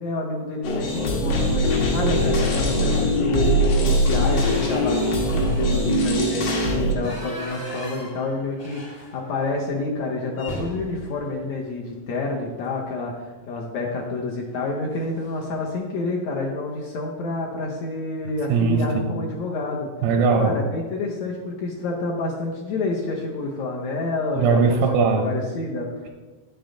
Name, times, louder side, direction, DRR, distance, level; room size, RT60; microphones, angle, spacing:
voice 1, 0.0-6.4 6.8-19.9 20.4-24.8 25.2-26.1, left 3 dB, 70° left, -1 dB, 1.7 m, -28 dB
sound 1, 0.6-6.9, equal, 90° left, 3.2 m, -21 dB
sound 2, 2.2-2.6 3.0-3.1 3.5-9.5 9.8-9.9 10.3-12.5 13.8-14.1 14.5-14.6 14.9-15.5, equal, 45° left, 0.7 m, -39 dB
voice 2, 18.5-19.2 20.0-20.5 24.3-25.3, right 5 dB, 90° right, 1 dB, 2.5 m, -20 dB
9.1 x 7.1 x 3.8 m, 1.3 s
omnidirectional pair, 4.0 m